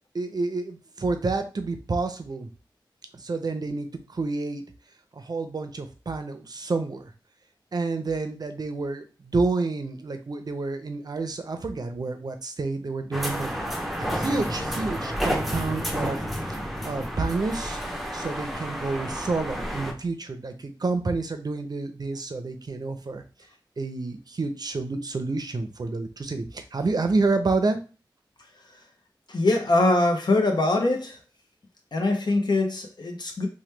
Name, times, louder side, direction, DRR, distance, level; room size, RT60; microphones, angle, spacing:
voice 1, 0.1-2.5 3.1-4.6 5.1-7.1 7.7-13.5 14.0-16.6 16.8-17.8 18.1-23.2 23.8-27.8, right 3 dB, 55° right, 7 dB, 0.5 m, -29 dB
sound 1, 13.1-19.9, equal, ahead, 0.7 m, -30 dB
voice 2, 29.3-31.2 31.9-33.5, left 2 dB, 60° left, 3 dB, 0.6 m, -23 dB
2.9 x 2.2 x 3.3 m, 0.34 s
wide cardioid pair, 65°, 8 cm